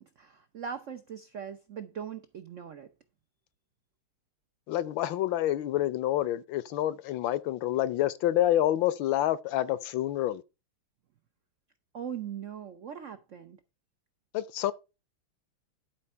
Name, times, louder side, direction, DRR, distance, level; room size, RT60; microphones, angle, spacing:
voice 1, 0.0-2.9 11.9-13.6, right 8 dB, 90° right, 0.6 m, -40 dB
voice 2, 4.7-10.4 14.3-14.7, left 13 dB, 75° left, 1.3 m, -28 dB
11.0 x 4.4 x 5.5 m
omnidirectional pair, 2.3 m